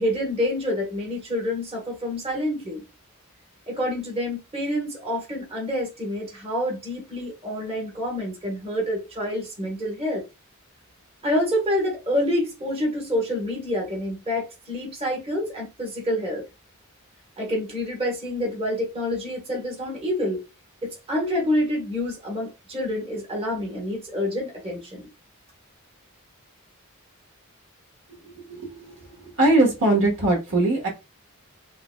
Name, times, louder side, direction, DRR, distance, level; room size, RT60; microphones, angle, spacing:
voice 1, 0.0-2.8 3.7-10.2 11.2-16.4 17.4-20.4 20.8-25.1, left 1 dB, 25° right, 1.2 m, -27 dB
voice 2, 28.5-28.9 29.4-30.9, right 2 dB, 60° right, 1.3 m, -20 dB
3.8 x 3.1 x 2.2 m
head